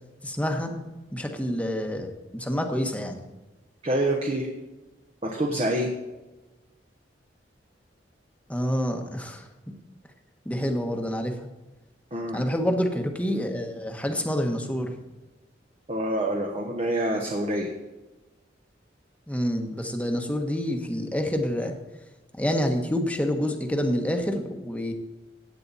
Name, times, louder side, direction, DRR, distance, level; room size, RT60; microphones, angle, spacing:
voice 1, 0.2-0.7 1.1-3.2 8.5-9.5 10.4-11.4 12.3-15.0 19.3-21.8 22.4-24.9, equal, 10° left, 4 dB, 1.2 m, -27 dB
voice 2, 3.8-4.5 5.2-5.9 12.1-12.4 15.9-17.7, right 1 dB, 35° right, 1 dB, 1.2 m, -26 dB
16.0 x 8.7 x 4.1 m, 1.1 s
head